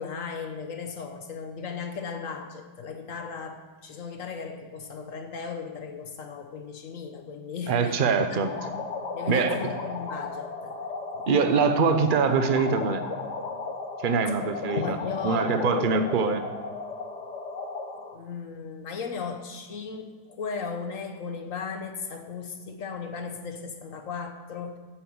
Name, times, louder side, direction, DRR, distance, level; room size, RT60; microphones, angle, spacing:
voice 1, 0.0-8.0 8.3-8.8 9.1-10.8 14.7-15.9 18.1-24.8, left 5 dB, 60° left, 6 dB, 1.1 m, -36 dB
voice 2, 7.7-8.5 9.3-9.7 11.3-13.0 14.0-15.0 15.2-16.4, right 5 dB, 50° right, 9 dB, 0.6 m, -23 dB
sound 1, 8.2-18.2, left 3 dB, 75° left, 1.6 m, -35 dB
8.6 x 7.7 x 7.0 m, 1.4 s
omnidirectional pair, 1.8 m